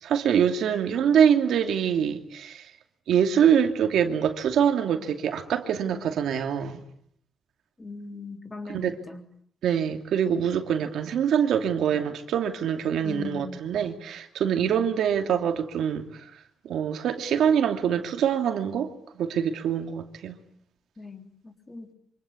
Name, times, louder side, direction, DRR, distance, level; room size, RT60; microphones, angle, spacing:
voice 1, 0.0-2.7 3.1-6.8 8.7-9.0 9.6-16.1 16.6-20.4, right 8 dB, 85° right, 2.7 m, -24 dB
voice 2, 7.8-9.2 13.0-13.7 21.0-21.9, left 4 dB, 20° left, 3.7 m, -39 dB
26.0 x 25.5 x 8.6 m
cardioid pair, 135°, 0 cm